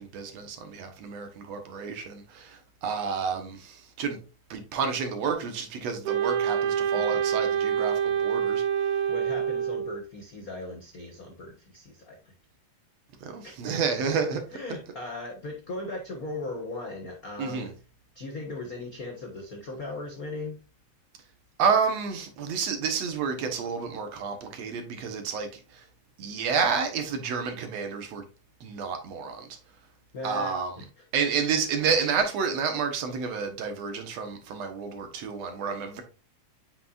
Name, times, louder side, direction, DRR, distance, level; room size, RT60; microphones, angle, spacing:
voice 1, 0.0-4.2 4.5-8.6 13.2-14.4 17.4-17.7 21.6-25.8 26.2-28.3 28.6-29.5 30.2-30.7 31.1-36.0, right 6 dB, 65° right, 2.1 m, -30 dB
Wind instrument woodwind instrument, 6.0-10.0, right 8 dB, 80° right, 2.3 m, -26 dB
voice 2, 9.1-12.3 13.4-13.6 14.0-14.1 14.5-17.7 18.1-20.6 30.1-30.9, left 2 dB, 70° left, 0.8 m, -38 dB
8.5 x 5.4 x 2.5 m
omnidirectional pair, 3.4 m